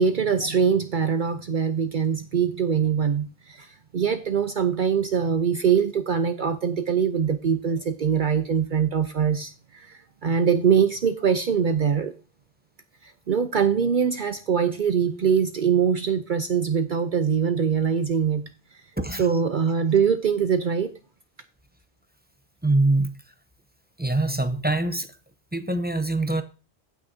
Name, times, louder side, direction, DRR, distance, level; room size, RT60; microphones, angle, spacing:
voice 1, 0.0-3.7 3.9-9.9 10.2-12.1 13.3-18.5 19.2-20.9, right 7 dB, 55° right, 0.7 m, -23 dB
voice 2, 22.6-23.1 24.0-25.1 25.5-26.4, right 2 dB, 10° right, 0.5 m, -23 dB
15.5 x 6.1 x 2.7 m
omnidirectional pair, 1.1 m